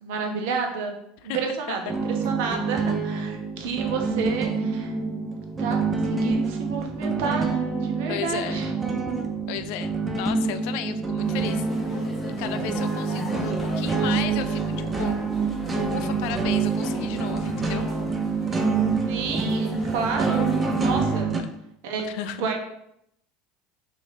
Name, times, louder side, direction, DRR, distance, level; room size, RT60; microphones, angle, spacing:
voice 1, 0.0-1.0 1.2-1.9 2.2-4.9 5.6-8.7 19.0-20.5 20.8-21.3 21.8-22.1 22.4-22.6, right 5 dB, 70° right, 3 dB, 0.6 m, -30 dB
sound 1, 1.9-21.4, right 4 dB, 25° right, 0.6 m, -26 dB
voice 2, 8.1-8.7 9.5-12.1 12.4-15.2 15.9-17.9 22.0-22.5, left 10 dB, 65° left, 11 dB, 0.3 m, -34 dB
sound 2, 11.2-21.2, left 1 dB, 15° left, 0.9 m, -38 dB
2.9 x 2.7 x 4.1 m, 0.75 s
hypercardioid pair, 85°, 0 cm